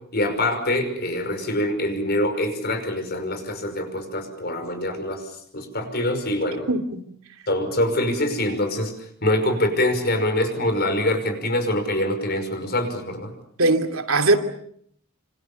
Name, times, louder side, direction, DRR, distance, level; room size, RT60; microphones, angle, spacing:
voice 1, 0.1-5.2 5.5-6.7 7.5-8.9 9.2-13.3, left 1 dB, 50° left, 5.6 m, -24 dB
voice 2, 6.7-7.0 13.6-14.4, right 2 dB, 75° right, 2.7 m, -20 dB
27.5 x 26.5 x 7.0 m
head